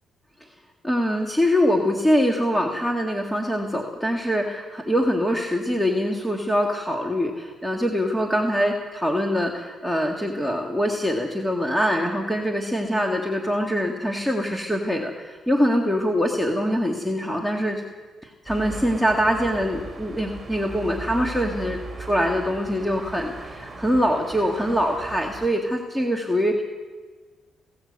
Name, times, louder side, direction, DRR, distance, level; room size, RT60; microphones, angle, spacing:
voice 1, 0.8-17.8 18.2-26.6, equal, 5° left, 1 dB, 2.1 m, -24 dB
sound 1, 18.5-25.5, right 3 dB, 15° right, 3.7 m, -38 dB
19.0 x 17.5 x 8.1 m, 1.4 s
cardioid pair, 90°, 0 cm